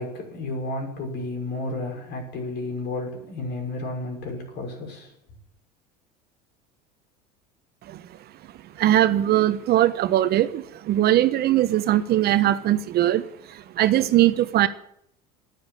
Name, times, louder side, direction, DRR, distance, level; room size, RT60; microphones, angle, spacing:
voice 1, 0.0-5.1, left 2 dB, 55° left, 6.0 m, -32 dB
voice 2, 8.8-14.7, right 13 dB, 50° right, 1.1 m, -21 dB
12.0 x 9.8 x 9.0 m
hypercardioid pair, 75°, 21 cm